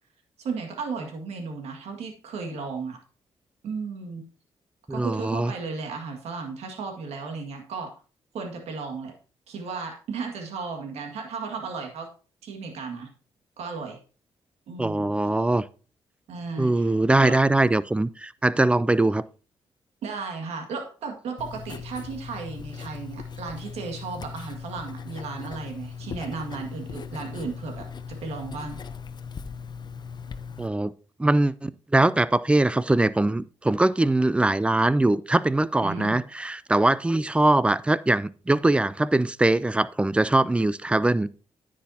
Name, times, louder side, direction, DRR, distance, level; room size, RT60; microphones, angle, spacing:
voice 1, 0.4-3.0 3.6-4.2 4.9-7.9 8.3-9.1 9.5-12.1 12.4-13.1 13.6-14.0 14.7-15.0 16.3-16.9 17.2-17.4 20.0-28.8 35.8-36.5, right 4 dB, 85° right, 1.9 m, -35 dB
voice 2, 4.9-5.5 14.8-15.6 16.6-19.2 30.6-30.9 31.2-41.3, right 2 dB, 10° right, 0.4 m, -22 dB
Writing, 21.4-30.7, left 6 dB, 45° left, 0.7 m, -39 dB
10.0 x 8.6 x 2.8 m
cardioid pair, 95°, 11 cm